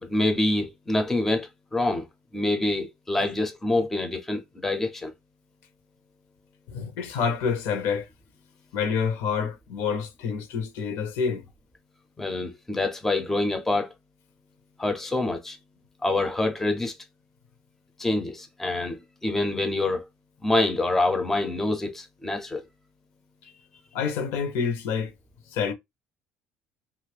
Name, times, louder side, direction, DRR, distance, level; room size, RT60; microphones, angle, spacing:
voice 1, 0.0-2.1 2.3-5.1 12.2-13.9 14.8-15.6 16.0-16.9 18.0-20.0 20.4-22.6, left 2 dB, 5° left, 0.5 m, -26 dB
voice 2, 6.7-8.1 8.7-11.5 23.9-25.1 25.5-25.7, left 6 dB, 70° left, 0.8 m, -27 dB
3.0 x 2.4 x 3.2 m
cardioid pair, 150°, 4 cm